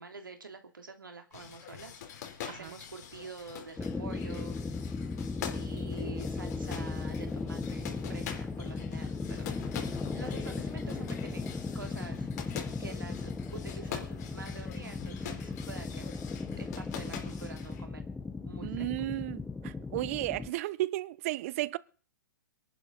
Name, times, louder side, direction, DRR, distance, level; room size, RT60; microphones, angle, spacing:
voice 1, 0.0-4.9 5.5-9.5 10.1-11.5 11.7-16.0 16.6-18.0 18.4-18.9, right 4 dB, 90° right, 2.8 m, -47 dB
sound 1, 1.3-17.8, left 9 dB, 55° left, 3.6 m, -45 dB
sound 2, 3.8-20.5, left 4 dB, 10° left, 0.8 m, -37 dB
voice 2, 18.6-21.8, right 17 dB, 45° right, 0.7 m, -34 dB
23.5 x 11.0 x 3.9 m
hypercardioid pair, 125°, 11 cm